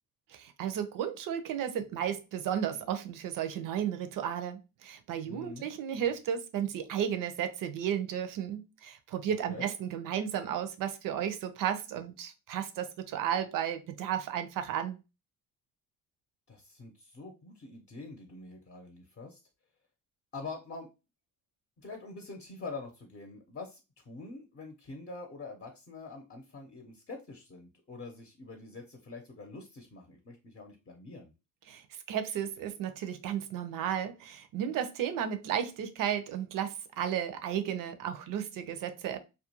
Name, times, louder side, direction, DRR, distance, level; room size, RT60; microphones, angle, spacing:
voice 1, 0.3-15.0 31.7-31.8 32.1-39.2, right 9 dB, 65° right, 0.6 m, -33 dB
voice 2, 5.2-5.7 9.3-9.7 16.5-19.4 20.3-20.9 21.8-31.3, left 3 dB, 30° left, 0.7 m, -45 dB
2.4 x 2.2 x 2.8 m
cardioid pair, 80°, 36 cm